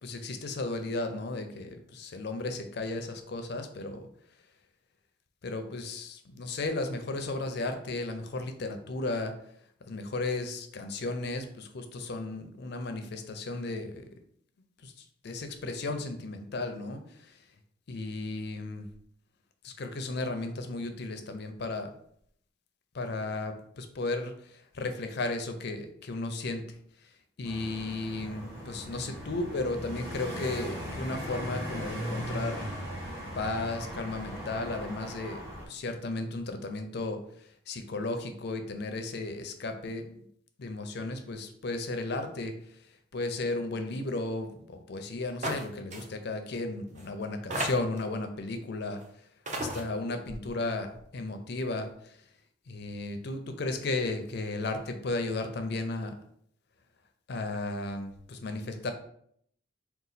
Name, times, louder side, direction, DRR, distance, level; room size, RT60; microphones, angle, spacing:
voice 1, 0.0-4.1 5.4-9.3 9.9-14.0 14.8-14.9 15.2-17.0 17.9-18.9 19.6-21.9 22.9-26.6 27.4-32.7 33.4-37.2 37.7-40.0 40.6-42.5 43.1-49.0 49.5-51.9 52.7-56.1 57.3-58.9, left 2 dB, 55° left, 7 dB, 0.5 m, -34 dB
sound 1, 27.4-35.6, equal, 15° right, 1.3 m, -38 dB
sound 2, 45.4-45.7 45.9-46.0 46.9-47.0 47.5-48.0 49.0-49.1 49.5-49.8, right 1 dB, 35° right, 0.5 m, -33 dB
3.9 x 2.3 x 4.0 m, 0.67 s
head